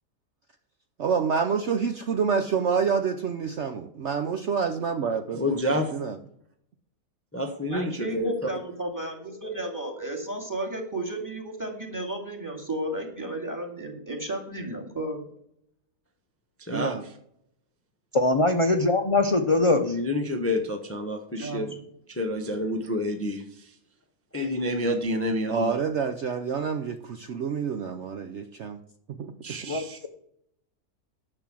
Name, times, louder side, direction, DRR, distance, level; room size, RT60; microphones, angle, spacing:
voice 1, 1.0-5.6 5.9-6.2 16.7-17.0 25.5-28.8 29.2-29.3 29.6-29.7, right 6 dB, 55° right, 7 dB, 0.9 m, -27 dB
voice 2, 5.3-5.9 7.3-8.3 16.6-17.1 19.7-21.7 22.1-23.7 24.3-25.8 29.4-30.0, left 1 dB, 10° left, 5 dB, 0.9 m, -29 dB
voice 3, 7.6-15.2 21.4-21.7, right 1 dB, 10° right, 1 dB, 2.2 m, -33 dB
voice 4, 18.1-20.0 29.7-30.1, left 2 dB, 35° left, 6 dB, 0.5 m, -22 dB
11.0 x 7.0 x 6.1 m, 0.71 s
omnidirectional pair, 1.6 m